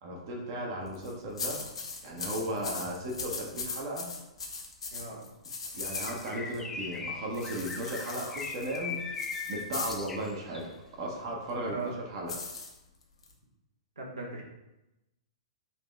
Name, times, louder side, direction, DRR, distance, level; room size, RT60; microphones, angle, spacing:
voice 1, 0.0-1.6 2.0-4.1 5.7-9.0 9.5-10.6 11.0-11.8 12.1-12.3, right 1 dB, 50° right, 0 dB, 0.8 m, -36 dB
sound 1, 0.9-6.6 7.3-10.1 12.3-13.3, left 4 dB, 75° left, 0.9 m, -39 dB
voice 2, 4.9-5.2 11.6-11.9 14.0-14.4, right 3 dB, 85° right, -2 dB, 1.0 m, -38 dB
Bird, 5.8-10.8, left 4 dB, 10° left, 0.4 m, -40 dB
4.1 x 2.9 x 3.4 m, 0.95 s
figure-of-eight pair, 110°, 3 cm